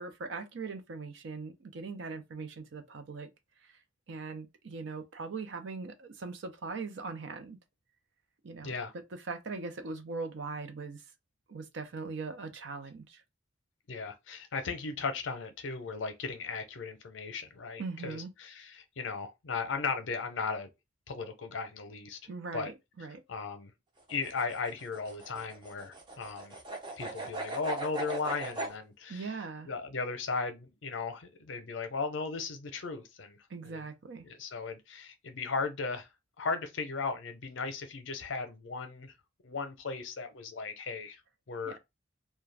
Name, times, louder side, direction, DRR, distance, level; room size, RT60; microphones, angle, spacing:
voice 1, 0.0-3.3 3.6-3.7 4.1-7.6 8.4-8.7 9.1-11.0 11.5-13.2 17.8-18.3 22.3-23.2 29.1-29.7 33.5-34.3 41.7-41.8, right 4 dB, 70° right, 0.5 m, -40 dB
voice 2, 13.9-20.7 21.1-22.2 22.5-22.7 23.3-23.7 24.1-26.6 27.0-29.4 29.6-33.4 33.6-33.9 34.2-36.1 36.4-39.1 39.4-41.2 41.5-41.8, left 4 dB, 75° left, 0.6 m, -36 dB
sound 1, 24.0-28.7, right 2 dB, 25° right, 0.5 m, -39 dB
2.3 x 2.2 x 3.2 m
head